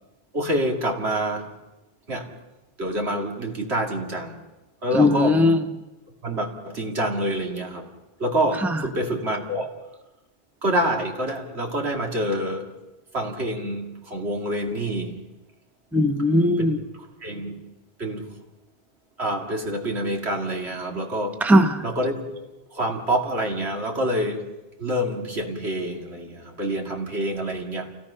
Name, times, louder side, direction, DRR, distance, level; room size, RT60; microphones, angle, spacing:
voice 1, 0.3-1.5 2.1-2.3 2.8-4.4 4.8-5.5 6.2-7.9 8.2-9.7 10.6-12.7 13.1-15.2 16.6-16.7 17.2-17.6 18.0-18.3 19.2-21.4 21.8-24.5 24.8-27.9, right 1 dB, 75° right, 1 dB, 2.8 m, -27 dB
voice 2, 4.9-5.6 8.6-8.8 15.9-16.8 21.4-21.8, left 1 dB, ahead, 6 dB, 0.9 m, -18 dB
28.5 x 17.5 x 5.7 m, 1.0 s
omnidirectional pair, 1.1 m